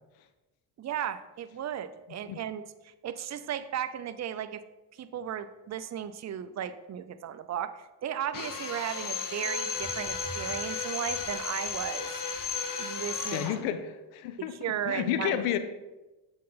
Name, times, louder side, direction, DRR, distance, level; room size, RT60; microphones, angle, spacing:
voice 1, 0.8-4.6 4.9-12.2 12.8-13.7 14.4-15.6, right 9 dB, 35° right, 12 dB, 0.5 m, -35 dB
Drill, 8.3-13.6, left 5 dB, 40° left, 0.9 m, -34 dB
sound 1, 8.5-8.6 9.7-13.4, left 1 dB, 70° left, 1.6 m, -48 dB
voice 2, 13.3-14.5 14.9-15.6, left 10 dB, 90° left, 11 dB, 0.6 m, -30 dB
7.4 x 3.9 x 3.9 m, 1.1 s
supercardioid pair, 55°, 49 cm